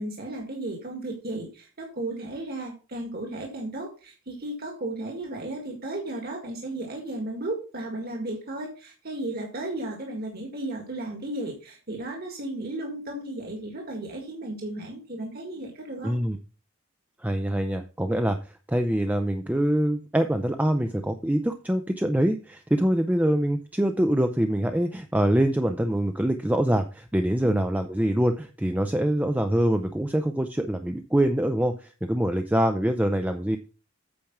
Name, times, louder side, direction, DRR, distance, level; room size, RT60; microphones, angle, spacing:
voice 1, 0.0-16.2, right 2 dB, 50° right, 1 dB, 1.9 m, -34 dB
voice 2, 16.0-16.4 17.2-33.6, right 1 dB, 10° right, 7 dB, 0.5 m, -24 dB
8.7 x 5.1 x 5.9 m, 0.35 s
head